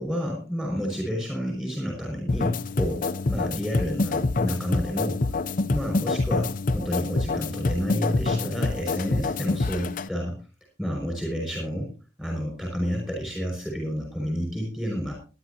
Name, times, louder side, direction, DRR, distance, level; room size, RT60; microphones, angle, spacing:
voice 1, 0.0-5.2 5.7-10.4 10.8-11.9 12.2-15.1, equal, 5° right, 1 dB, 5.6 m, -30 dB
sound 1, 2.3-10.1, left 3 dB, 45° left, 0.6 m, -26 dB
21.0 x 11.0 x 2.8 m, 0.33 s
head